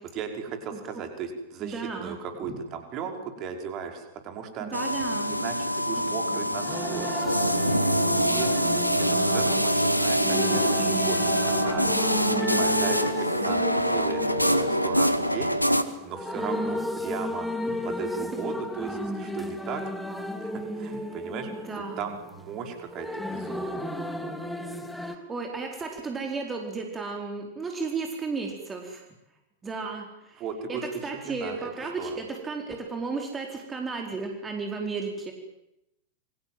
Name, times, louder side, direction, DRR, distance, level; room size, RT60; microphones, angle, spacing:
voice 1, 0.1-4.7 5.3-7.2 8.0-11.8 12.3-17.5 17.8-19.8 20.4-21.6 22.0-23.9 30.4-32.2, right 6 dB, 35° right, 5 dB, 5.5 m, -37 dB
voice 2, 1.6-2.2 4.6-5.4 6.0-6.1 6.3-6.4 16.4-16.8 18.2-18.4 20.1-20.4 21.4-22.1 24.9-29.0 29.6-30.4 30.7-35.3, right 4 dB, 15° right, 2 dB, 4.5 m, -34 dB
sound 1, 4.7-15.8, equal, 90° left, 1.7 m, -25 dB
sound 2, 6.1-25.1, left 1 dB, 5° left, 3.2 m, -34 dB
29.0 x 24.0 x 7.8 m, 0.86 s
figure-of-eight pair, 90°, 0 cm